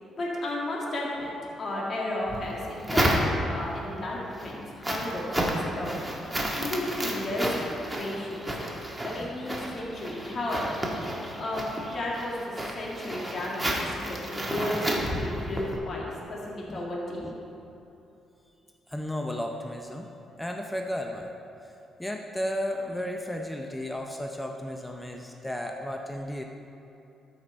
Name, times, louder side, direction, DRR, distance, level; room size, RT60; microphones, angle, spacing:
voice 1, 0.2-1.3 1.6-6.1 6.6-7.7 8.0-8.5 9.0-10.8 11.3-17.4, left 1 dB, 45° left, -4 dB, 1.8 m, -33 dB
sound 1, 2.3-3.7 4.2-15.8, right 1 dB, 10° right, 1.4 m, -31 dB
voice 2, 18.9-20.1 20.4-21.3 21.6-21.7 22.0-26.4, left 1 dB, 5° left, 2 dB, 0.6 m, -34 dB
13.0 x 4.9 x 4.3 m, 2.9 s
cardioid pair, 90°, 0 cm